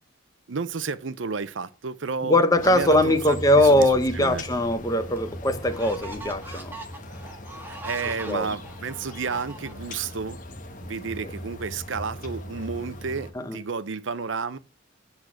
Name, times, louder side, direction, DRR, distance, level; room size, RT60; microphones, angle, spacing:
voice 1, 0.5-4.4 7.7-10.4 10.8-14.6, right 5 dB, 70° right, 0.7 m, -32 dB
voice 2, 2.2-6.8 8.3-8.5 13.3-13.6, left 1 dB, 20° left, 0.9 m, -21 dB
sound 1, 2.6-13.3, left 1 dB, 40° left, 1.2 m, -39 dB
sound 2, 4.5-4.6 5.2-10.1, right 1 dB, 10° right, 1.8 m, -42 dB
8.5 x 6.5 x 5.9 m
head